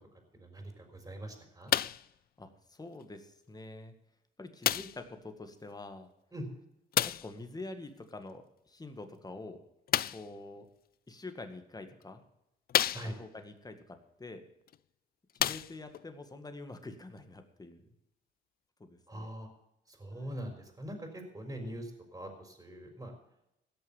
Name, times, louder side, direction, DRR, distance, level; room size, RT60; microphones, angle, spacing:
voice 1, 0.3-1.7 6.3-6.5 12.9-13.1 19.1-19.5 19.9-23.1, right 1 dB, 15° right, 4 dB, 4.2 m, -42 dB
sound 1, 1.7-2.1 3.0-3.1 4.6-5.1 6.9-7.3 9.9-10.3 11.3-11.4 12.0-12.1 12.7-13.4 14.7-14.8 15.3-16.0 16.9-17.0, left 11 dB, 50° left, 0.4 m, -30 dB
voice 2, 2.4-3.9 4.4-6.1 7.0-9.6 10.1-10.7 11.1-12.2 12.9-14.5 15.3-17.9 18.8-19.3 20.1-20.3, left 2 dB, 20° left, 7 dB, 1.9 m, -46 dB
16.5 x 6.8 x 7.2 m, 0.84 s
cardioid pair, 90°, 20 cm